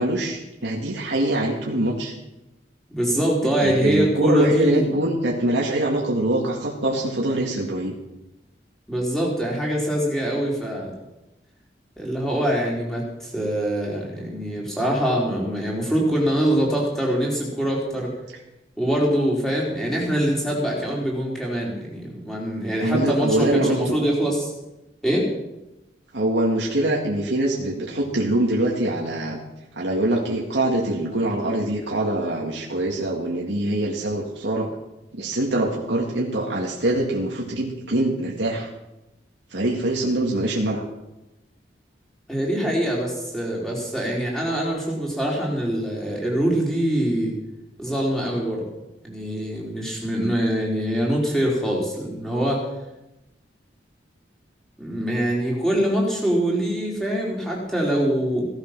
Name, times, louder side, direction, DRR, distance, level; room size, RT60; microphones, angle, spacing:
voice 1, 0.0-2.1 3.4-8.0 22.8-24.0 26.1-29.4 29.7-34.7 35.1-38.7 39.5-40.8, right 1 dB, 80° right, -2 dB, 2.0 m, -24 dB
voice 2, 2.9-4.9 8.9-10.9 12.0-18.1 18.8-24.5 25.0-25.3 42.3-47.3 47.8-48.7 49.0-52.6 54.8-58.4, equal, ahead, -3 dB, 4.3 m, -24 dB
17.0 x 12.5 x 6.1 m, 0.96 s
head